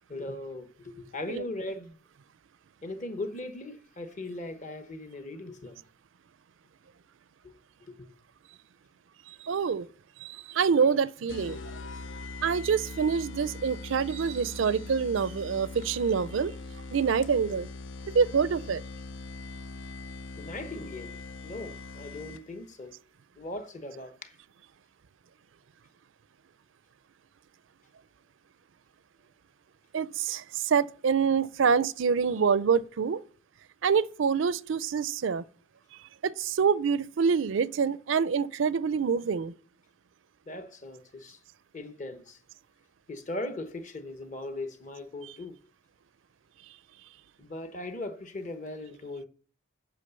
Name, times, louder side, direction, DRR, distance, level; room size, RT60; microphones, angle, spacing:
voice 1, 0.1-2.0 2.8-5.8 7.9-8.1 20.4-21.2 21.4-22.9 23.4-24.3 40.5-41.4 41.7-42.4 43.1-45.6 47.4-49.2, left 2 dB, 35° left, 1.0 m, -39 dB
voice 2, 9.5-9.9 10.2-11.6 12.4-16.5 16.9-17.7 18.1-18.8 29.9-33.2 33.8-35.4 36.2-39.5, right 6 dB, 70° right, 0.4 m, -26 dB
sound 1, 11.3-22.7, left 3 dB, 65° left, 0.5 m, -41 dB
8.4 x 5.7 x 6.8 m
head